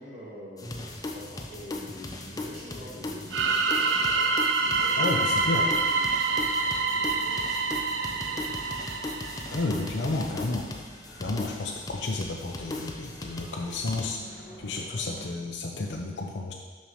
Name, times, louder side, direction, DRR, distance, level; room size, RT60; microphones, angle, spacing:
voice 1, 0.0-8.7, equal, 40° right, -9 dB, 2.2 m, -45 dB
sound 1, 0.6-15.3, equal, 50° left, 2.1 m, -49 dB
sound 2, 0.6-14.1, left 2 dB, 20° left, 0.6 m, -38 dB
sound 3, 3.3-10.0, right 4 dB, 85° right, 0.6 m, -27 dB
voice 2, 5.0-5.7 9.5-10.7 11.2-16.5, left 2 dB, 70° left, 1 dB, 0.7 m, -31 dB
5.9 x 5.6 x 5.0 m, 1.4 s
head